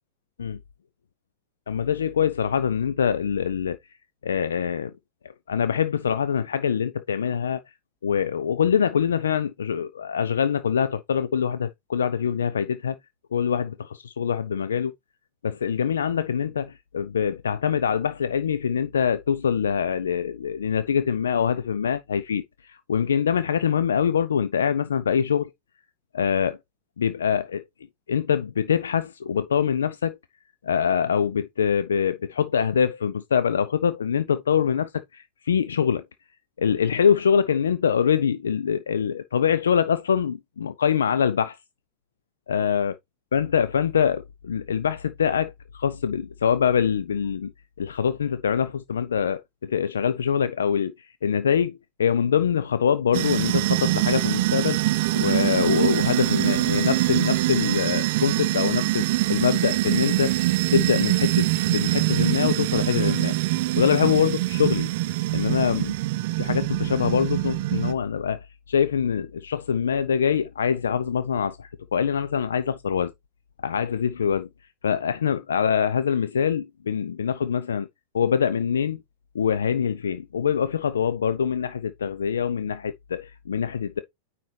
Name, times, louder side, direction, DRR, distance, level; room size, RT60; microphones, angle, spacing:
voice 1, 1.7-3.8 4.2-4.9 5.5-7.6 8.0-13.0 13.3-14.9 15.4-25.5 26.1-26.6 27.0-27.6 28.1-30.2 30.6-36.0 36.6-41.6 42.5-42.9 43.3-47.5 47.8-54.8 55.1-60.4 60.7-63.4 63.8-64.9 65.3-65.9 66.4-73.1 73.6-74.5 74.8-77.9 78.1-79.0 79.3-84.0, left 7 dB, 70° left, 0.4 m, -24 dB
sound 1, 53.1-67.9, right 17 dB, 50° right, 0.5 m, -24 dB
9.3 x 4.1 x 3.2 m
figure-of-eight pair, 90°, 0 cm